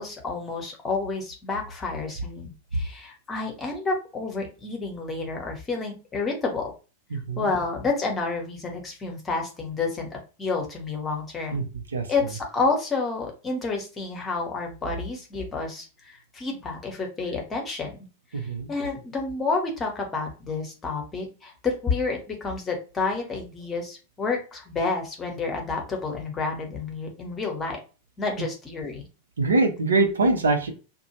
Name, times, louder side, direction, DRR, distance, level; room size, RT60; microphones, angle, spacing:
voice 1, 0.0-6.7 7.4-11.6 12.1-18.0 18.3-27.8 28.2-29.1, left 4 dB, 20° left, 2 dB, 1.0 m, -29 dB
voice 2, 7.1-7.5 11.5-11.6 11.9-12.0 18.3-18.7 29.4-30.7, right 3 dB, 70° right, 4 dB, 0.7 m, -23 dB
2.4 x 2.2 x 3.0 m, 0.33 s
figure-of-eight pair, 90°, 0 cm